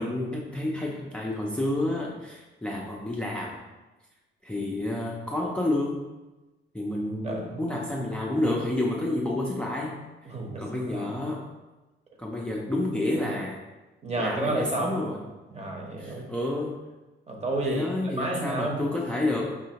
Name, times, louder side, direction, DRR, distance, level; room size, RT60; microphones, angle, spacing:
voice 1, 0.0-3.6 4.4-6.0 6.7-10.0 10.6-11.5 12.2-13.6 14.2-15.2 16.0-16.8 17.6-19.6, left 1 dB, 5° left, -2 dB, 0.4 m, -29 dB
voice 2, 7.2-7.7 10.3-11.2 14.0-15.0 15.5-16.3 17.3-18.8, right 2 dB, 35° right, 1 dB, 0.9 m, -31 dB
4.9 x 2.7 x 2.8 m, 1.1 s
cardioid pair, 90°, 20 cm